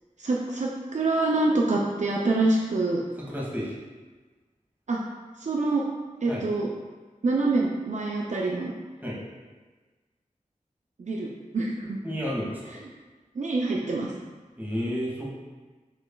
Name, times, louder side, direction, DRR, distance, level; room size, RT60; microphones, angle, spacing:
voice 1, 0.2-3.0 4.9-5.0 5.4-5.8 6.2-6.7 7.2-8.7 11.0-12.0 13.4-14.1, right 2 dB, 60° right, -2 dB, 0.4 m, -26 dB
voice 2, 3.3-3.8 6.3-6.4 9.0-9.2 12.0-12.7 14.6-15.2, equal, 15° right, -6 dB, 1.5 m, -31 dB
6.9 x 3.1 x 2.3 m, 1.3 s
wide cardioid pair, 60°, 14 cm